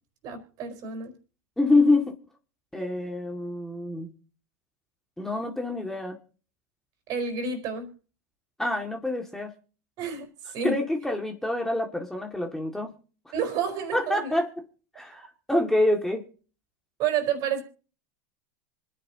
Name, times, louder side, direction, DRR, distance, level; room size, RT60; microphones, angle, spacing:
voice 1, 0.2-1.1 7.1-7.9 10.0-10.8 13.3-14.3 17.0-17.6, right 6 dB, 50° right, 4.6 m, -30 dB
voice 2, 1.6-2.2 2.7-4.1 5.2-6.2 8.6-9.5 10.6-12.9 13.9-14.5 14.9-16.3, left 2 dB, 5° left, 2.1 m, -26 dB
26.0 x 10.0 x 2.9 m
hypercardioid pair, 100°, 9 cm